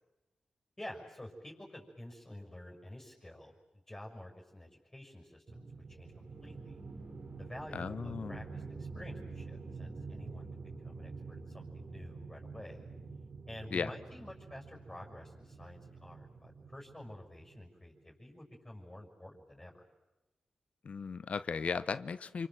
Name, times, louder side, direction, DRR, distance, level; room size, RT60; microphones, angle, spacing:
voice 1, 0.8-3.5 3.9-6.8 7.4-10.5 10.8-12.9 13.5-19.9, left 1 dB, 20° left, -1 dB, 6.5 m, -50 dB
sound 1, 5.5-17.7, right 4 dB, 60° right, 3.6 m, -47 dB
voice 2, 7.7-8.4 13.7-13.9 20.8-22.5, left 5 dB, 65° left, 15 dB, 0.9 m, -36 dB
29.0 x 24.5 x 7.7 m, 1.0 s
cardioid pair, 60°, 2 cm